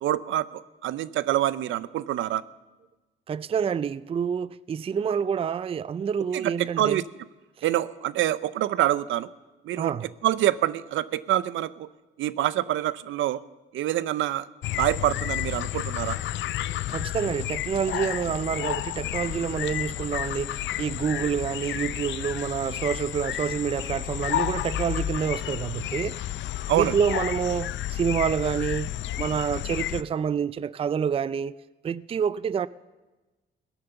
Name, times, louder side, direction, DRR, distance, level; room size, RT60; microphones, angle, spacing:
voice 1, 0.0-2.4 6.3-7.0 7.6-9.3 9.6-11.9 12.2-13.4 13.7-14.5 14.8-16.2 26.7-27.0, right 13 dB, 75° right, 0.6 m, -26 dB
voice 2, 3.3-7.0 7.6-7.7 9.8-10.1 16.9-26.2 26.7-31.6 31.8-32.7, right 7 dB, 30° right, 0.4 m, -28 dB
sound 1, 14.6-30.0, left 13 dB, 70° left, 0.5 m, -31 dB
17.5 x 10.5 x 6.9 m
cardioid pair, 90°, 20 cm